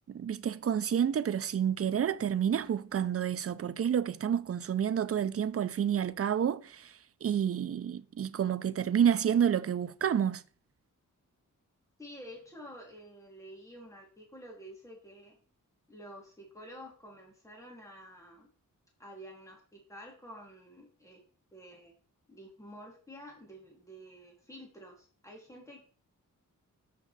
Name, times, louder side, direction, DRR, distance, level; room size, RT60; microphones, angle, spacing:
voice 1, 0.0-6.9 7.2-10.4, right 8 dB, 45° right, 0.5 m, -29 dB
voice 2, 12.0-15.4 15.9-18.5 19.0-21.2 21.5-21.9 22.3-25.8, equal, 10° left, 2.5 m, -50 dB
7.5 x 5.6 x 4.1 m
wide cardioid pair, 140°, 33 cm